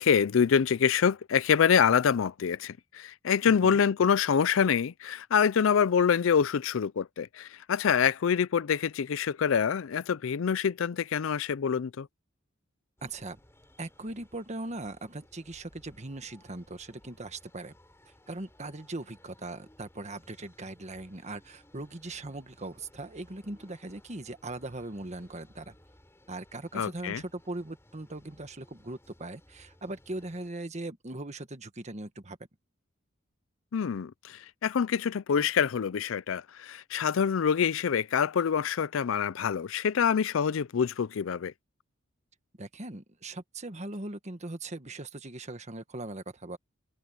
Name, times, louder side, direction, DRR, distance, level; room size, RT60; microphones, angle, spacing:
voice 1, 0.0-12.1 26.7-27.2 33.7-41.5, left 7 dB, 70° left, 0.4 m, -26 dB
voice 2, 3.5-3.8 13.0-13.4 13.8-17.7 18.3-25.7 26.3-32.4 42.6-46.6, right 2 dB, 35° right, 1.4 m, -40 dB
sound 1, 13.0-30.5, left 1 dB, 15° left, 4.4 m, -60 dB
head